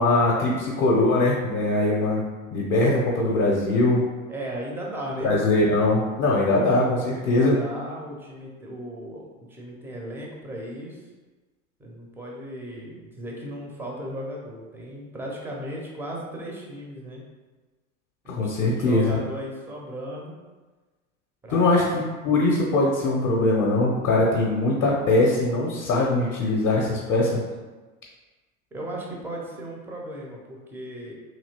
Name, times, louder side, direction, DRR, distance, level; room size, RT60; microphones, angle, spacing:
voice 1, 0.0-2.2 2.5-4.0 5.2-7.5 18.3-19.2 21.5-27.4, left 2 dB, 40° left, -3 dB, 0.6 m, -21 dB
voice 2, 4.3-5.3 7.1-11.0 11.8-17.2 18.2-20.3 21.4-22.0 28.7-31.1, right 1 dB, 5° right, -2 dB, 0.4 m, -36 dB
2.9 x 2.8 x 2.8 m, 1.3 s
figure-of-eight pair, 85°, 43 cm